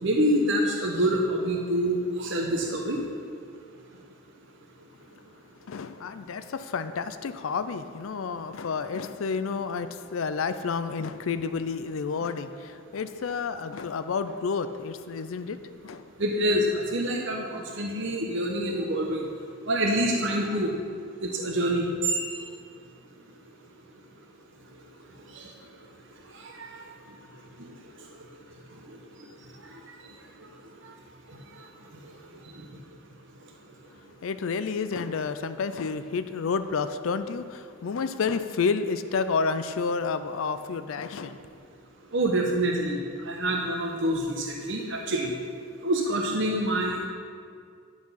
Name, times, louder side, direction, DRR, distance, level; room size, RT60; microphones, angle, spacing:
voice 1, 0.0-3.0 16.2-19.2 19.7-20.7 21.2-22.5 25.3-25.5 26.6-26.8 42.1-45.3 45.8-47.1, right 1 dB, 55° right, 0 dB, 0.9 m, -26 dB
voice 2, 5.7-15.6 15.8-16.0 34.2-41.4, left 5 dB, 70° left, 11 dB, 0.4 m, -30 dB
10.5 x 6.1 x 5.7 m, 2.2 s
head